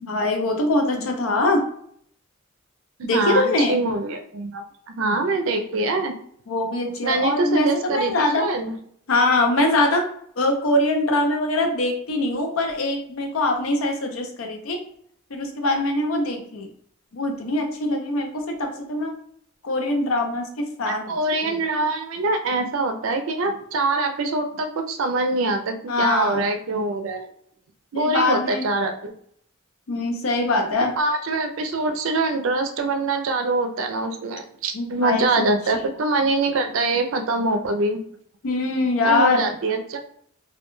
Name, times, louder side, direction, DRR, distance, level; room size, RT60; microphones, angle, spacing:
voice 1, 0.0-1.6 3.0-3.8 6.5-8.5 9.1-10.1 10.4-14.8 15.3-16.7 17.1-19.1 19.6-21.1 21.4-21.6 25.9-26.4 27.9-28.6 29.9-30.9 34.7-35.5 35.7-35.9 38.4-39.5, left 2 dB, 80° left, 4 dB, 0.6 m, -23 dB
voice 2, 3.1-6.1 7.0-8.7 21.1-27.3 27.9-29.1 31.0-38.0 39.0-40.0, right 2 dB, 70° right, 6 dB, 0.4 m, -24 dB
2.3 x 2.2 x 3.0 m, 0.64 s
head